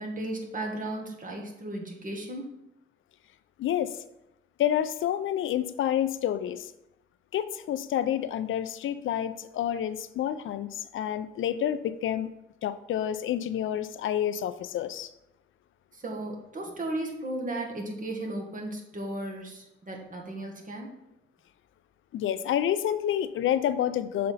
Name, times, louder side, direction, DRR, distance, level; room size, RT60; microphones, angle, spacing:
voice 1, 0.0-2.5 15.9-20.9, right 1 dB, 40° right, 1 dB, 1.4 m, -35 dB
voice 2, 3.6-4.0 4.6-6.7 7.3-12.3 12.6-15.1 22.1-24.3, left 10 dB, 90° left, 13 dB, 0.4 m, -29 dB
6.8 x 4.2 x 4.0 m, 0.84 s
cardioid pair, 100°, 20 cm